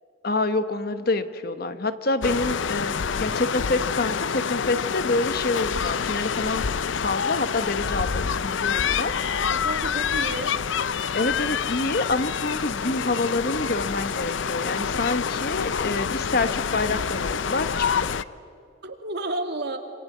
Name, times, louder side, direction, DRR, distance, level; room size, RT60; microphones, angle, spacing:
voice 1, 0.2-2.9 3.2-6.6 7.0-9.1 11.1-18.2, left 2 dB, 50° left, 11 dB, 1.2 m, -27 dB
sound 1, 2.2-18.2, left 6 dB, 75° left, 0.6 m, -27 dB
voice 2, 9.5-10.5 18.8-19.8, right 2 dB, 60° right, 5 dB, 2.5 m, -31 dB
26.5 x 26.0 x 8.5 m, 2.4 s
head